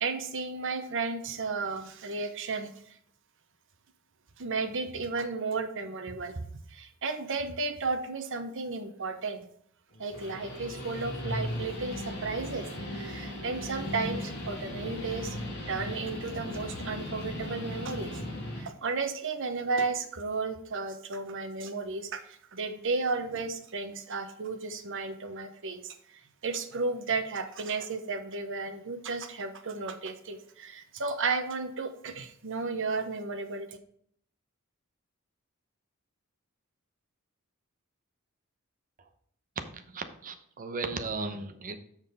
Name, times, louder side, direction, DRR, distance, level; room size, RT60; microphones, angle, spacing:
voice 1, 0.0-3.0 4.4-9.5 10.0-15.4 15.7-18.2 18.6-33.8, right 4 dB, 65° right, 8 dB, 1.0 m, -34 dB
Guitar, 9.9-18.7, left 1 dB, 55° left, 2.7 m, -37 dB
voice 2, 39.6-41.8, right 3 dB, 40° right, 7 dB, 0.9 m, -36 dB
7.3 x 6.3 x 4.0 m, 0.66 s
head